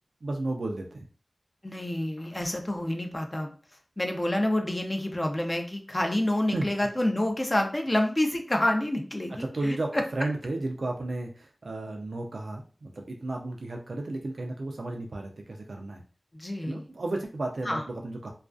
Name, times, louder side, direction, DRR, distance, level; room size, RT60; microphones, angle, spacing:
voice 1, 0.2-1.1 6.5-6.7 9.4-16.0 16.6-18.3, right 2 dB, 90° right, 1 dB, 0.3 m, -33 dB
voice 2, 1.6-3.5 4.0-10.0 16.3-16.9 17.7-17.8, left 1 dB, 30° left, 4 dB, 0.4 m, -28 dB
2.3 x 2.2 x 2.4 m, 0.40 s
wide cardioid pair, 55°, 0 cm